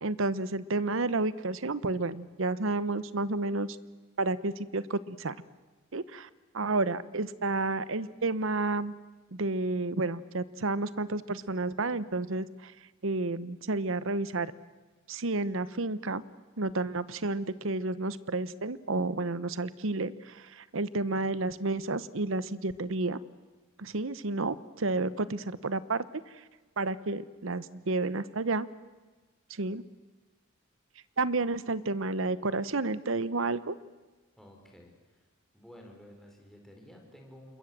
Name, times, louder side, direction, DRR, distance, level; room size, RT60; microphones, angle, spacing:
voice 1, 0.0-3.7 4.2-5.4 5.9-6.3 6.5-8.9 9.3-12.7 13.0-14.5 15.1-16.2 16.6-23.2 23.8-26.0 26.8-28.7 29.5-29.8 31.2-33.7, right 3 dB, 70° right, 16 dB, 0.9 m, -31 dB
voice 2, 34.4-35.3 35.5-37.6, equal, ahead, 0 dB, 5.0 m, -52 dB
27.5 x 22.0 x 7.5 m, 1.3 s
head